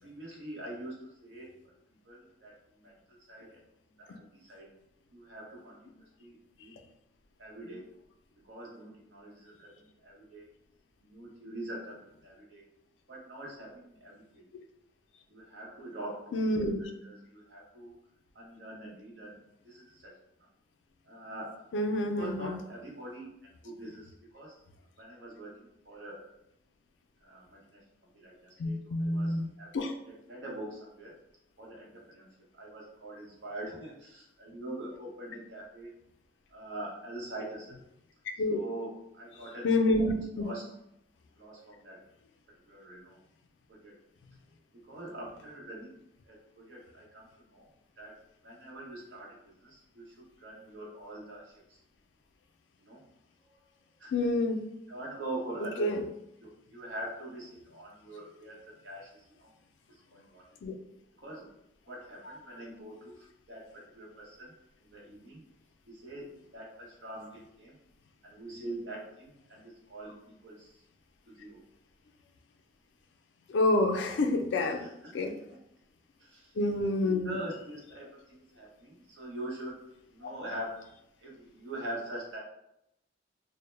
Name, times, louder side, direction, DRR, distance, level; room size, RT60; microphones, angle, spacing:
voice 1, 0.0-1.5 2.1-2.9 3.3-3.6 4.0-4.7 5.1-6.8 7.4-7.9 8.4-10.5 11.0-12.6 13.1-14.4 15.3-16.4 16.8-17.9 18.3-19.4 19.6-20.1 21.1-21.6 22.1-24.6 25.0-26.2 27.2-27.8 28.1-29.7 30.1-31.1 31.6-32.3 32.5-35.9 36.5-37.8 38.5-39.7 40.1-40.7 41.4-42.0 42.7-43.2 43.7-44.0 44.7-45.9 46.2-47.7 48.0-48.1 48.4-51.8 52.8-53.0 53.5-53.6 54.0-54.4 54.9-56.1 56.4-59.5 59.9-60.4 61.2-61.5 61.9-64.5 64.8-65.4 65.9-67.8 68.2-70.2 70.4-70.8 71.3-71.6 74.6-75.3 76.2-76.5 77.0-79.8 80.1-80.8 81.2-82.4, right 1 dB, 75° right, -3 dB, 0.8 m, -44 dB
voice 2, 16.3-16.9 21.7-22.6 28.6-29.5 29.7-29.9 38.4-38.6 39.6-40.5 54.1-54.6 55.8-56.0 60.6-60.8 73.5-74.9 75.1-75.3 76.6-77.4, left 2 dB, 80° left, 5 dB, 0.3 m, -28 dB
2.1 x 2.0 x 3.1 m, 0.80 s
head